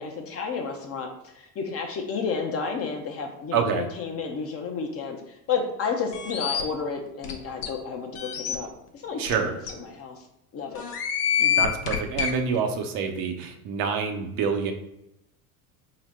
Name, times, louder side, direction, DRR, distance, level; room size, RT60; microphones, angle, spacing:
voice 1, 0.0-8.7 9.0-10.2 10.5-10.8 11.4-11.7 12.5-12.7, left 5 dB, 30° left, 3 dB, 0.6 m, -31 dB
voice 2, 3.5-3.9 9.2-9.5 11.6-14.7, right 6 dB, 45° right, 5 dB, 0.6 m, -27 dB
sound 1, 6.1-6.6 7.2-7.3 7.6-7.7 8.2-8.6 9.3-9.4 9.7-9.8 10.8-12.3, left 9 dB, 80° left, 0.8 m, -26 dB
3.9 x 2.1 x 4.1 m, 0.85 s
hypercardioid pair, 85°, 46 cm